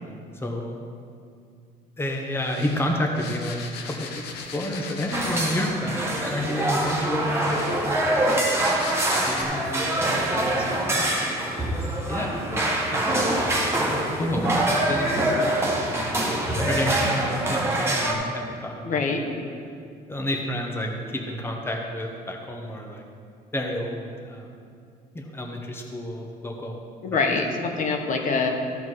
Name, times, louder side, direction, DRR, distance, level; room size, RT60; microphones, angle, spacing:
voice 1, 0.3-0.8 2.0-3.6 3.8-4.2 4.5-8.1 9.3-10.0 10.3-13.1 13.9-15.5 15.8-16.3 16.6-19.3 20.1-23.0 23.5-24.5 25.1-26.8 27.1-27.3, left 1 dB, 15° left, 1 dB, 1.1 m, -30 dB
sound 1, 2.4-5.9 6.7-9.4, left 5 dB, 80° left, 1.1 m, -38 dB
sound 2, 5.1-18.1, right 1 dB, 15° right, 1.6 m, -24 dB
voice 2, 18.8-19.4 27.0-28.5, left 4 dB, 50° left, 3 dB, 1.2 m, -25 dB
13.5 x 5.4 x 4.7 m, 2.3 s
cardioid pair, 110°, 17 cm